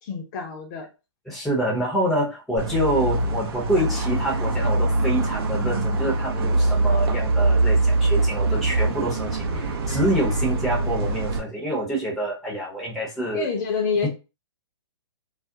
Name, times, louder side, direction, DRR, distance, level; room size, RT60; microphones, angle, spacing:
voice 1, 0.0-0.9 13.3-14.1, left 5 dB, 40° left, 2 dB, 0.6 m, -27 dB
voice 2, 1.3-13.5 14.0-14.1, right 1 dB, ahead, -3 dB, 0.7 m, -26 dB
sound 1, 2.6-11.4, right 2 dB, 50° right, 0.7 m, -23 dB
2.4 x 2.0 x 2.7 m, 0.29 s
hypercardioid pair, 135°, 16 cm